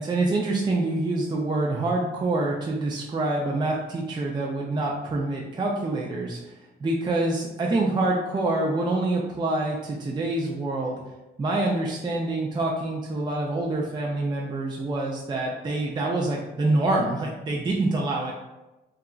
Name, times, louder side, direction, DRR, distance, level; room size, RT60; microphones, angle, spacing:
voice 1, 0.0-6.5 6.8-11.0 11.4-18.3, right 2 dB, 25° right, -2 dB, 0.4 m, -26 dB
2.8 x 2.4 x 2.3 m, 1.0 s
cardioid pair, 90°, 20 cm